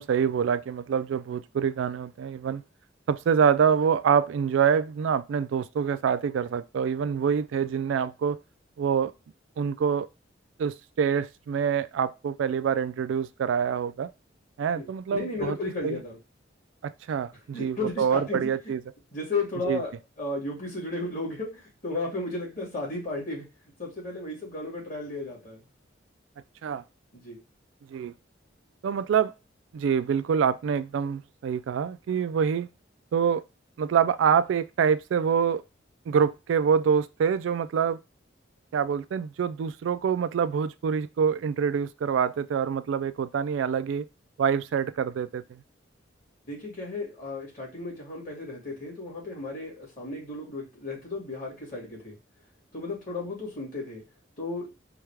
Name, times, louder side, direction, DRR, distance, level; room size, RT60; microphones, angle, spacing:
voice 1, 0.0-2.6 3.1-8.4 8.8-9.1 9.6-10.1 10.6-14.1 14.6-15.6 15.8-16.0 16.8-18.8 19.7-19.8 26.6-26.8 27.9-28.1 28.8-29.3 29.7-32.7 33.1-33.4 33.8-35.6 36.1-38.0 38.7-44.0 44.4-45.4, right 7 dB, 80° right, 0.3 m, -26 dB
voice 2, 14.7-16.2 17.5-18.4 19.1-19.9 20.2-23.5 23.8-25.6 27.1-27.4 46.5-52.2 52.7-54.0 54.4-54.7, left 2 dB, 45° left, 2.3 m, -34 dB
4.6 x 2.3 x 3.3 m
head